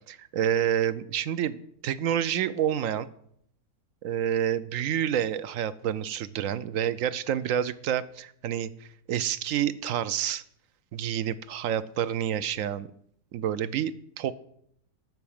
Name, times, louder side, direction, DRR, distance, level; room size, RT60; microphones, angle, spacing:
voice 1, 0.1-1.6 1.8-3.1 4.0-8.7 9.1-10.4 10.9-12.9 13.3-14.3, right 10 dB, 65° right, 15 dB, 1.0 m, -28 dB
12.5 x 4.7 x 8.7 m, 0.69 s
omnidirectional pair, 1.6 m